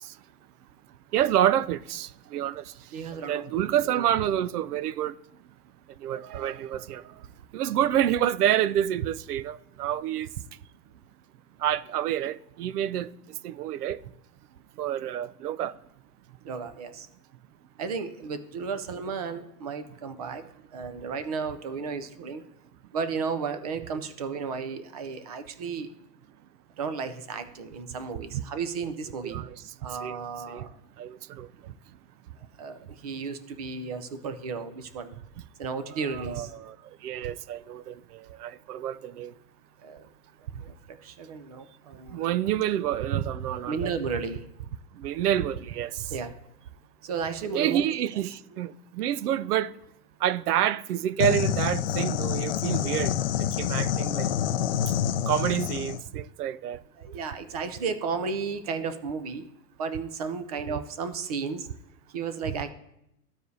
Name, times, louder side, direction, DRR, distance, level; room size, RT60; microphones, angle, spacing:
voice 1, 1.1-2.6 3.1-5.2 6.0-7.0 7.5-10.3 11.6-13.2 13.4-14.0 14.8-15.7 28.3-28.4 29.2-29.6 30.0-30.2 30.5-30.7 31.0-31.5 36.1-36.8 37.0-39.3 42.1-43.9 45.0-46.1 47.5-49.7 50.2-53.1 53.6-54.3 55.3-56.8 60.6-60.8 62.5-62.6, right 11 dB, 85° right, 0.6 m, -28 dB
voice 2, 2.9-3.7 3.9-4.0 16.4-17.1 17.8-20.4 20.7-22.4 22.9-25.9 26.8-29.4 29.8-30.7 32.6-35.1 35.6-36.5 39.8-40.1 40.6-42.3 43.7-44.5 46.1-46.3 47.0-47.8 48.5-48.7 57.0-59.5 59.8-61.7 62.1-62.7, right 5 dB, 30° right, 0.4 m, -33 dB
sound 1, 51.2-56.0, left 9 dB, 45° left, 0.4 m, -27 dB
14.0 x 4.8 x 2.6 m
hypercardioid pair, 150°, 45 cm